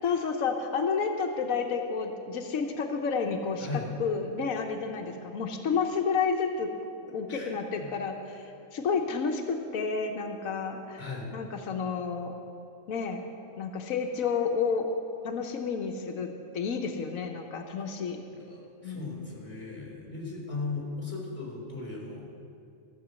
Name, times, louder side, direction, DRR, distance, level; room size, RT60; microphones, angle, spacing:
voice 1, 0.0-6.7 7.1-11.1 11.3-12.3 12.9-13.2 13.6-14.9 15.2-16.3 16.5-18.2 18.8-19.2, left 5 dB, 85° left, 4 dB, 1.3 m, -30 dB
voice 2, 3.6-3.9 7.3-7.9 11.0-11.3 18.3-22.4, left 3 dB, 10° left, -3 dB, 3.7 m, -38 dB
14.5 x 6.6 x 8.1 m, 2.6 s
omnidirectional pair, 1.4 m